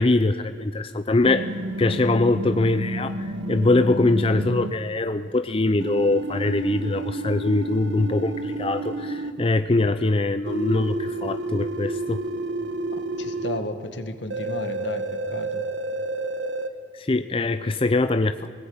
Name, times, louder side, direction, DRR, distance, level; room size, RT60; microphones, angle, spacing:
voice 1, 0.0-1.5 1.8-12.2 16.9-18.5, left 2 dB, 30° left, 10 dB, 0.6 m, -23 dB
sound 1, 1.2-4.7 5.8-9.3 10.5-13.6 14.3-16.7, right 2 dB, 90° right, 1.5 m, -30 dB
voice 2, 13.2-15.7, left 2 dB, 80° left, 8 dB, 1.8 m, -33 dB
23.5 x 18.5 x 8.8 m, 2.1 s
head